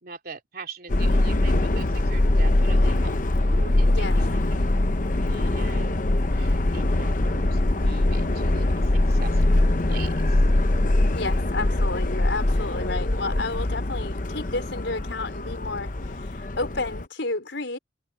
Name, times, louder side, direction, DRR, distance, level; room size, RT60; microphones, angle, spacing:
voice 1, 0.0-4.6 5.2-10.8, right 4 dB, 55° right, 3.7 m, -42 dB
Subway metro underground, 0.9-17.0, left 1 dB, 45° left, 0.9 m, -22 dB
voice 2, 3.9-4.2 11.2-17.8, left 3 dB, 75° left, 4.5 m, -31 dB
head